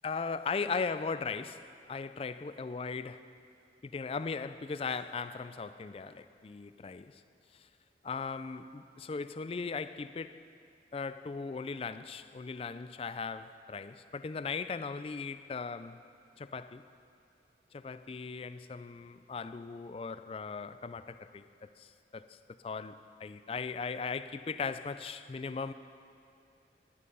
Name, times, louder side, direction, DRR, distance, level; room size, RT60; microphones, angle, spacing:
voice 1, 0.0-3.3 3.8-7.2 8.0-10.4 10.9-16.0 16.4-16.8 17.7-25.7, left 5 dB, 30° left, 0.3 m, -38 dB
12.5 x 11.5 x 5.4 m
head